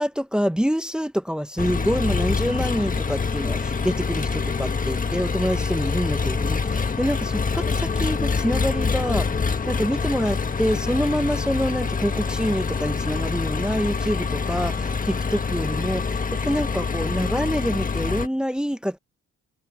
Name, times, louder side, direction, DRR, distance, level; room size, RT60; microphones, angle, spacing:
voice 1, 0.0-19.0, equal, 5° right, 0.9 m, -26 dB
Engine, 1.6-18.3, left 5 dB, 25° left, 1.5 m, -25 dB
cardioid pair, 90°, 30 cm